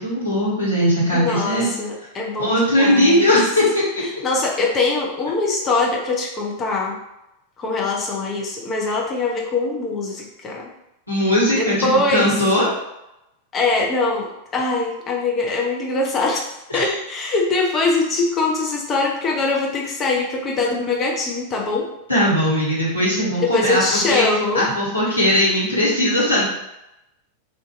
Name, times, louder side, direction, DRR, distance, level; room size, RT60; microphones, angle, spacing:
voice 1, 0.0-1.7 2.4-3.8 11.1-12.7 16.7-16.9 22.1-24.2 24.5-26.5, equal, 85° left, -7 dB, 1.0 m, -19 dB
voice 2, 1.1-3.3 4.2-7.0 7.6-10.7 11.5-12.3 13.5-14.3 14.5-16.5 16.7-21.9 23.4-24.6, left 3 dB, 25° left, -1 dB, 0.6 m, -22 dB
2.6 x 2.3 x 2.5 m, 0.88 s
figure-of-eight pair, 90°, 0 cm